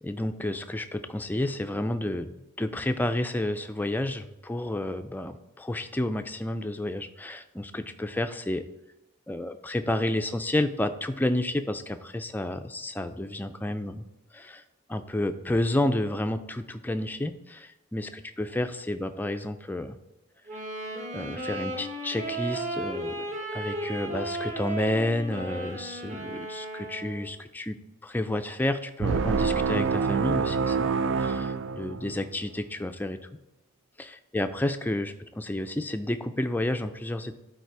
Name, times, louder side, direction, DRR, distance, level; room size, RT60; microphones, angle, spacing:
voice 1, 0.0-8.6 9.3-14.0 14.3-14.6 14.9-20.0 21.1-23.3 23.5-27.8 28.0-30.9 31.2-33.2 34.0-37.4, left 1 dB, 10° left, 8 dB, 0.4 m, -30 dB
Wind instrument woodwind instrument, 20.5-27.3, right 2 dB, 40° right, 1.7 m, -35 dB
sound 1, 29.0-32.3, right 5 dB, 75° right, 0.4 m, -26 dB
12.0 x 4.1 x 4.6 m, 0.94 s
head